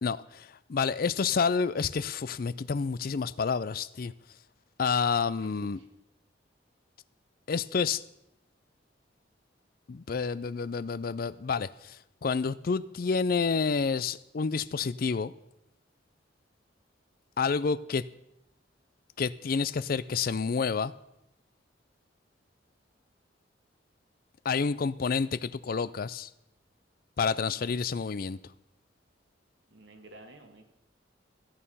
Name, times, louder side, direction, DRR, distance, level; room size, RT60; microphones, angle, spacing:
voice 1, 0.0-4.1 4.8-5.8 7.5-8.0 9.9-12.0 12.2-15.3 17.4-18.0 19.2-20.9 24.4-26.3 27.2-28.4, left 5 dB, 50° left, 0.4 m, -29 dB
voice 2, 5.0-5.9 29.7-30.6, right 2 dB, 75° right, 1.9 m, -53 dB
14.5 x 8.8 x 5.5 m
head